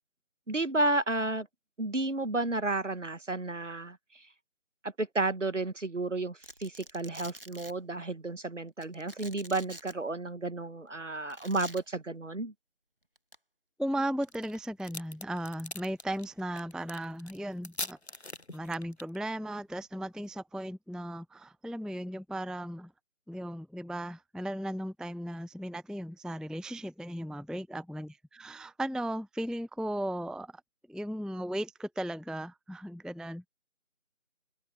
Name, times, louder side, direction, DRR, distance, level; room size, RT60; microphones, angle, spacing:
voice 1, 0.5-1.5 1.8-4.0 4.8-12.5, right 2 dB, 65° right, 1.2 m, -32 dB
Domestic sounds home sounds, 6.4-7.7 8.8-9.9 11.3-11.8 13.2-13.4 14.2-14.6, right 1 dB, 45° right, 1.5 m, -47 dB
voice 2, 13.8-18.0 18.5-22.9 23.3-30.5 30.9-33.5, right 1 dB, ahead, 0.4 m, -36 dB
sound 1, 14.3-19.2, left 2 dB, 55° left, 1.0 m, -41 dB
open air
figure-of-eight pair, 175°, 40 cm